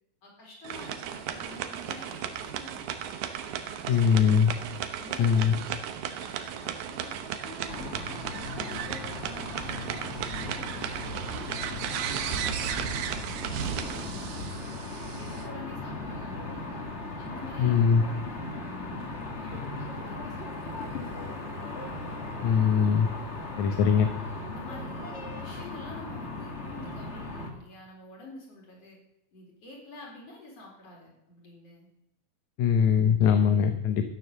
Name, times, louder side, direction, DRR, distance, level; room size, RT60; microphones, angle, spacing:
voice 1, 0.2-2.9 3.6-4.3 4.7-5.6 6.0-8.0 8.5-10.9 11.3-14.9 15.2-16.9 17.2-18.5 18.8-21.5 23.6-24.1 24.5-29.0 29.3-31.9, left 2 dB, 55° left, -1 dB, 5.2 m, -48 dB
sound 1, 0.6-15.5, right 9 dB, 85° right, 2.4 m, -35 dB
voice 2, 3.9-4.5 5.2-5.6 17.6-18.0 22.4-23.1 23.6-24.1 32.6-34.0, left 7 dB, 75° left, 7 dB, 2.2 m, -21 dB
sound 2, 7.7-27.5, left 2 dB, 25° left, 1.9 m, -38 dB
14.0 x 9.6 x 6.7 m, 0.83 s
omnidirectional pair, 3.3 m